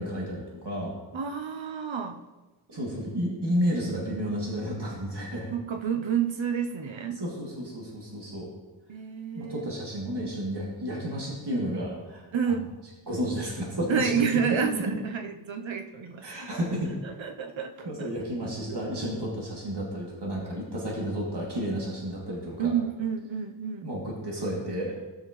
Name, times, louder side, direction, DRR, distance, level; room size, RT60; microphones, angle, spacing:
voice 1, 0.0-1.0 2.7-5.5 7.2-8.5 9.3-12.2 13.1-14.3 14.9-15.0 16.2-16.9 17.8-22.7 23.8-25.0, equal, 60° right, -4 dB, 2.5 m, -31 dB
voice 2, 1.1-2.2 5.5-7.2 8.9-9.6 12.3-12.7 13.9-16.2 17.0-18.1 18.7-18.8 22.6-23.9, right 7 dB, 90° right, 6 dB, 0.9 m, -29 dB
17.5 x 6.4 x 3.1 m, 1.2 s
wide cardioid pair, 85°, 45 cm